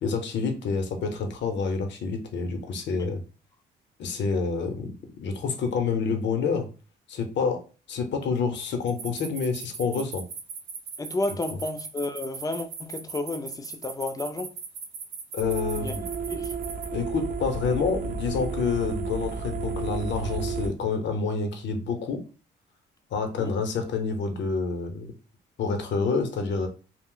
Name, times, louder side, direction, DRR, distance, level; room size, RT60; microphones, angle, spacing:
voice 1, 0.0-3.2 4.0-6.7 7.1-7.6 7.9-10.2 15.3-16.0 16.9-22.2 23.1-25.1 25.6-26.7, left 5 dB, 65° left, 0.7 m, -28 dB
sound 1, 8.9-16.9, right 6 dB, 80° right, 0.7 m, -38 dB
voice 2, 11.0-14.5 15.8-16.0 16.3-16.5 23.4-23.6, left 2 dB, 20° left, 0.4 m, -32 dB
sound 2, 15.4-20.7, right 4 dB, 45° right, 0.6 m, -32 dB
2.4 x 2.0 x 3.7 m
cardioid pair, 90°, 20 cm